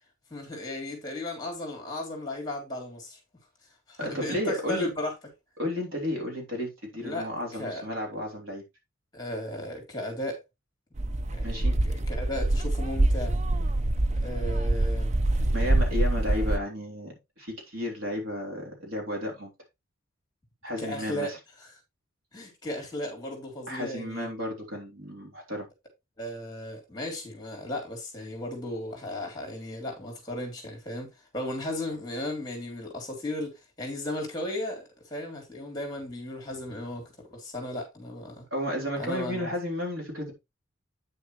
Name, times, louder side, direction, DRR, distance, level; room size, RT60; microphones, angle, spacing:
voice 1, 0.3-3.2 3.9-5.1 7.0-7.3 7.6-7.8 9.1-10.4 11.3-13.3 14.2-15.1 20.8-21.3 22.3-24.3 26.2-38.4 39.0-39.5, left 1 dB, 20° left, 3.2 m, -35 dB
voice 2, 4.0-4.9 5.6-8.6 11.4-11.7 15.5-19.5 20.6-21.4 23.7-25.7 38.5-40.3, left 1 dB, 70° right, 3.4 m, -33 dB
sound 1, 11.0-16.6, right 1 dB, 30° right, 0.5 m, -25 dB
9.4 x 6.5 x 3.1 m
head